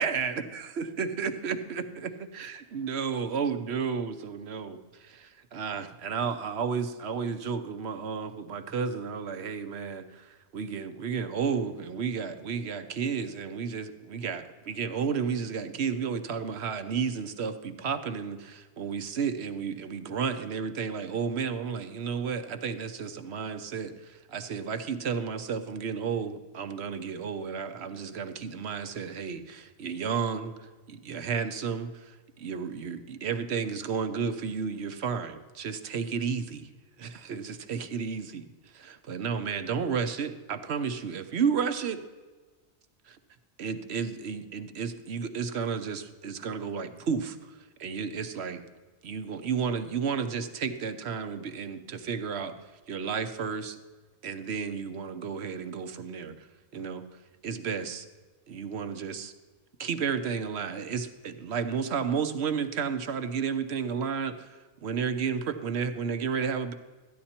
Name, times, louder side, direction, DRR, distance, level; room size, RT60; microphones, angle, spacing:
voice 1, 0.0-36.7 37.0-38.5 38.7-42.0 43.1-43.2 43.6-48.6 49.0-52.6 52.9-53.8 54.2-56.5 56.7-57.1 57.4-58.1 58.5-59.3 59.8-66.7, right 6 dB, 65° right, 9 dB, 1.1 m, -32 dB
14.0 x 10.5 x 4.3 m, 1.3 s
omnidirectional pair, 1.2 m